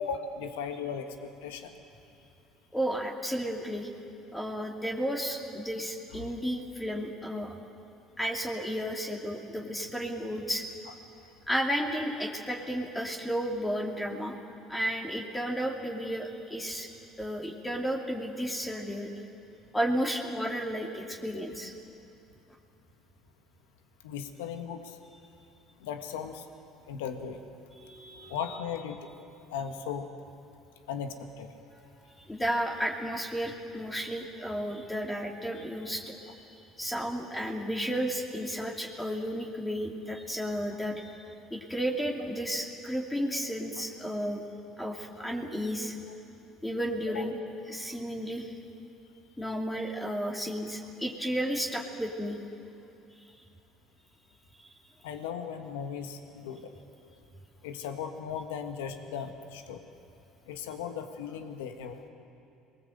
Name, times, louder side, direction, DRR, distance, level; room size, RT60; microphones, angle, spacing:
voice 1, 0.0-1.7 6.2-6.3 24.0-25.0 25.8-26.5 26.9-27.4 28.2-29.1 29.5-30.1 30.9-31.5 47.1-47.2 55.0-56.7 57.6-59.9 60.5-62.0, left 7 dB, 90° left, 6 dB, 1.6 m, -37 dB
voice 2, 2.7-3.9 4.3-7.5 8.2-10.6 11.5-14.3 14.7-16.9 17.2-19.1 19.7-21.7 27.8-28.4 32.3-36.5 36.7-41.2 41.5-44.4 44.8-45.9 46.6-47.3 47.7-48.5 49.4-52.4 54.6-54.7, equal, 10° left, 0 dB, 2.7 m, -33 dB
26.5 x 20.5 x 7.9 m, 2.8 s
supercardioid pair, 75°, 0 cm